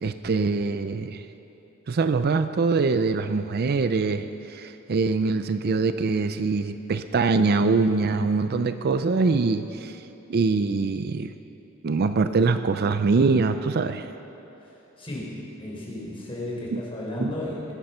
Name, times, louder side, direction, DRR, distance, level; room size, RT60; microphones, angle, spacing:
voice 1, 0.0-1.2 1.9-10.0 10.3-11.3 11.8-14.1 16.7-16.8 17.2-17.3, right 4 dB, 50° right, 10 dB, 0.5 m, -23 dB
voice 2, 15.0-17.7, left 1 dB, 25° left, -4 dB, 4.0 m, -34 dB
20.0 x 10.5 x 5.6 m, 3.0 s
head